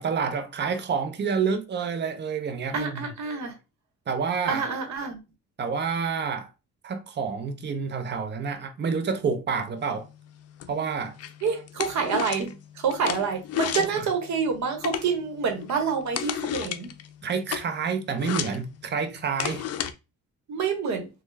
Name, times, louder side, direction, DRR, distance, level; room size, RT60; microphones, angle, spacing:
voice 1, 0.0-3.1 4.1-4.6 5.6-6.5 6.8-10.1 10.7-11.1 13.8-14.1 17.2-19.7, right 5 dB, 35° right, 0.6 m, -28 dB
voice 2, 2.7-3.5 4.5-5.2 11.4-16.9 20.5-21.1, right 5 dB, 65° right, 1.1 m, -27 dB
sound 1, 9.8-19.9, left 10 dB, 55° left, 0.5 m, -35 dB
3.2 x 2.2 x 3.2 m
cardioid pair, 90°, 30 cm